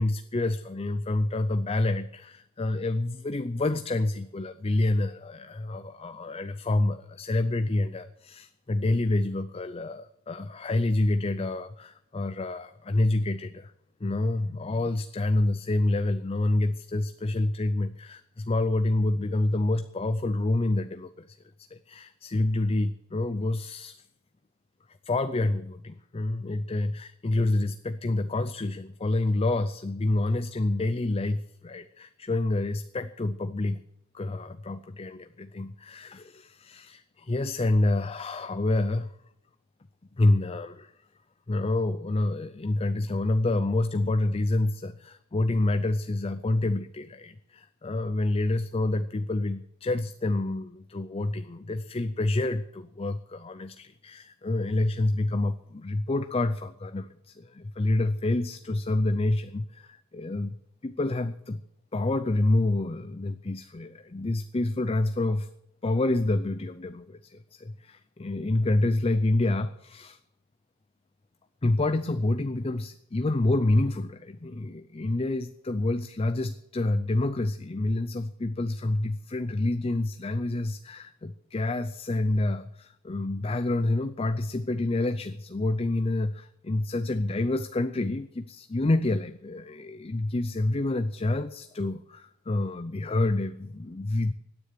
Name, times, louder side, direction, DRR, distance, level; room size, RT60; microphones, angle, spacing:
voice 1, 0.0-13.7 14.0-21.4 21.7-24.0 25.1-33.8 34.1-39.1 40.2-40.9 41.5-60.6 60.8-61.6 61.9-65.5 65.8-70.2 71.6-94.3, left 2 dB, 25° left, 11 dB, 0.5 m, -28 dB
17.0 x 9.7 x 6.7 m, 0.78 s
head